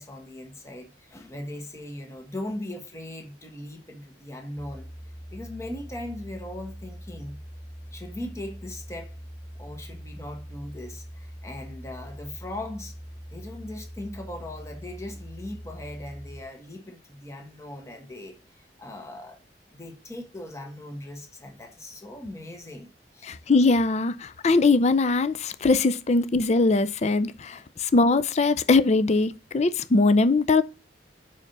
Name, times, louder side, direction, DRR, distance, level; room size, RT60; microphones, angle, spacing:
voice 1, 0.0-4.9 5.3-7.4 7.9-9.1 9.6-13.0 13.3-19.4 19.7-23.3, left 1 dB, 15° left, 1.5 m, -39 dB
sound 1, 4.6-16.4, equal, 5° right, 1.0 m, -42 dB
voice 2, 23.2-30.6, left 3 dB, 40° left, 0.5 m, -21 dB
5.8 x 4.9 x 6.6 m
head